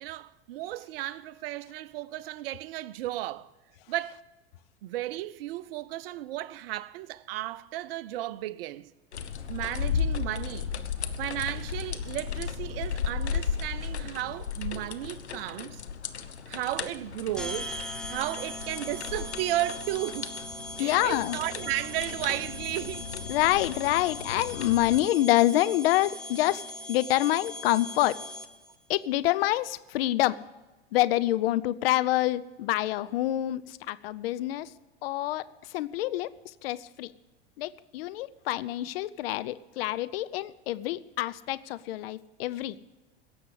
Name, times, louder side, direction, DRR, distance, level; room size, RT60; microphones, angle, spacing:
voice 1, 0.0-3.5 3.9-4.2 4.8-8.9 9.5-10.7 11.2-15.8 16.5-17.8 18.1-20.4 20.8-23.1, right 15 dB, 60° right, 0.6 m, -34 dB
sound 1, 9.1-25.1, left 7 dB, 90° left, 0.9 m, -35 dB
sound 2, 17.4-28.8, left 1 dB, ahead, 0.8 m, -40 dB
voice 2, 20.8-21.4 23.3-26.6 26.9-28.2 28.9-30.4 30.9-34.7 35.0-35.4 35.7-36.3 36.6-37.1 37.6-42.8, left 15 dB, 65° left, 0.7 m, -27 dB
17.0 x 7.0 x 8.1 m
hypercardioid pair, 90°, 32 cm